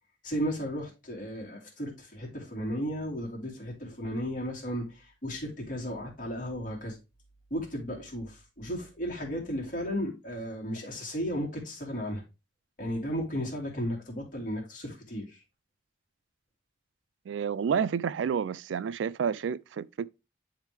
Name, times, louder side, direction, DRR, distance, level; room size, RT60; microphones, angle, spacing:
voice 1, 0.2-7.0 7.5-12.2 12.8-15.4, equal, 45° left, 2.5 m, -34 dB
voice 2, 17.3-20.1, right 7 dB, 85° right, 0.3 m, -30 dB
10.0 x 3.6 x 3.2 m
head